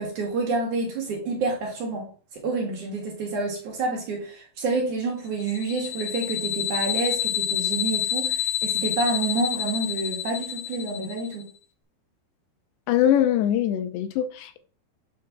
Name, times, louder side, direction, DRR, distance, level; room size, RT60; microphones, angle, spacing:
voice 1, 0.0-2.1 2.4-11.4, right 3 dB, 60° right, 2.5 m, -28 dB
sound 1, 5.4-11.3, left 11 dB, 70° left, 2.6 m, -28 dB
voice 2, 12.9-14.6, left 10 dB, 85° left, 2.8 m, -22 dB
7.8 x 3.2 x 5.9 m
omnidirectional pair, 4.8 m